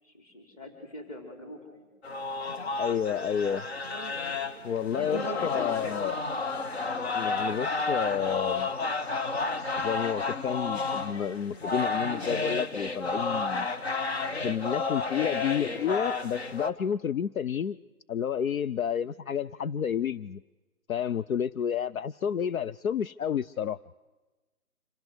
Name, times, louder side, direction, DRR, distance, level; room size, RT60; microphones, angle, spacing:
voice 1, 0.0-1.9 5.3-6.1 15.2-15.4, left 1 dB, 25° left, 3 dB, 4.3 m, -45 dB
sound 1, 2.0-16.7, left 3 dB, 45° left, 1.4 m, -31 dB
voice 2, 2.8-3.7 4.6-6.2 7.1-8.7 9.8-13.7 14.4-17.8 18.1-20.4 20.9-23.8, left 8 dB, 70° left, 15 dB, 0.6 m, -30 dB
26.5 x 16.0 x 8.0 m, 1.2 s
hypercardioid pair, 165°, 43 cm